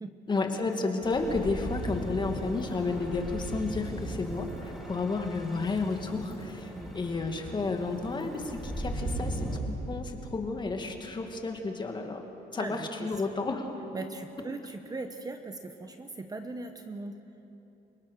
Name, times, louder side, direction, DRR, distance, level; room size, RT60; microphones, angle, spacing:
voice 1, 0.3-12.2 12.5-13.7, left 3 dB, 25° left, 4 dB, 2.4 m, -32 dB
sound 1, 1.0-9.6, right 1 dB, ahead, 4.3 m, -38 dB
voice 2, 12.5-13.1 13.9-17.2, right 3 dB, 20° right, 6 dB, 1.1 m, -39 dB
29.0 x 18.0 x 6.6 m, 3.0 s
cardioid pair, 110°, 17 cm